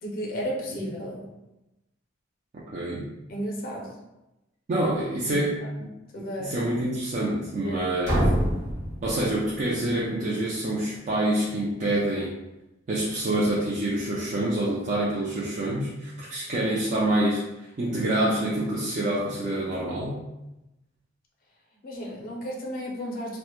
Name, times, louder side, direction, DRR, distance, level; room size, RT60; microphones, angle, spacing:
voice 1, 0.0-1.2 3.3-3.9 5.3-5.7 6.1-6.5 7.6-8.2 21.8-23.4, equal, 50° left, -1 dB, 0.5 m, -33 dB
voice 2, 2.5-3.1 4.7-5.6 6.4-8.1 9.0-12.3 12.9-20.2, right 1 dB, 40° right, -7 dB, 0.4 m, -26 dB
sound 1, 8.0-9.9, equal, 60° right, 0.8 m, -26 dB
2.1 x 2.0 x 2.9 m, 0.96 s
head